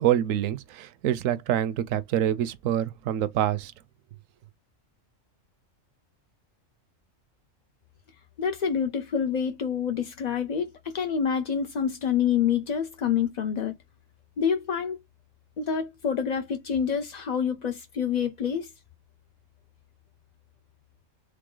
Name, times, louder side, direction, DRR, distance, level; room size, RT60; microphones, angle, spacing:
voice 1, 0.0-3.7, right 11 dB, 80° right, 1.0 m, -26 dB
voice 2, 8.4-13.7 14.4-15.0 15.6-18.7, left 7 dB, 50° left, 0.5 m, -27 dB
3.8 x 3.4 x 3.7 m
omnidirectional pair, 1.3 m